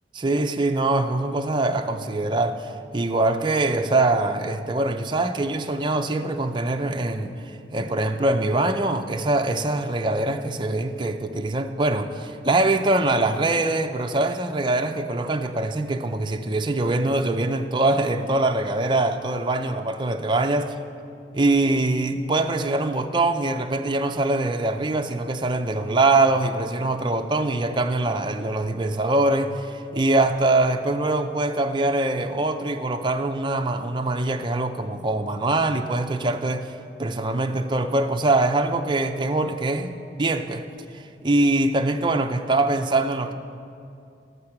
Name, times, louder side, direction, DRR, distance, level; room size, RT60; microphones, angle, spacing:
voice 1, 0.2-20.7 21.3-36.7 37.0-39.9 40.2-40.6 40.9-43.3, right 2 dB, 25° right, 0.5 m, -23 dB
13.0 x 8.2 x 5.8 m
head